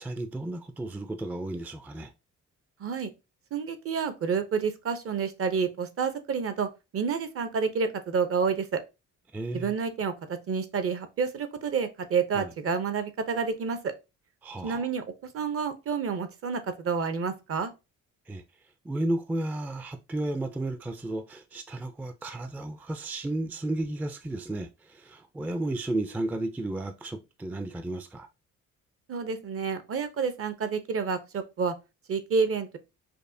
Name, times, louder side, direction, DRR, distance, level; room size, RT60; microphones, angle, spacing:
voice 1, 0.0-2.1 9.3-9.7 12.3-12.5 14.4-14.9 18.3-18.4 18.8-28.3, right 1 dB, 5° right, 0.3 m, -33 dB
voice 2, 2.8-3.1 3.5-8.8 9.5-13.9 14.6-15.0 15.3-17.7 29.1-31.7 32.1-32.8, right 5 dB, 50° right, 0.7 m, -29 dB
5.2 x 2.1 x 2.6 m
cardioid pair, 90°, 30 cm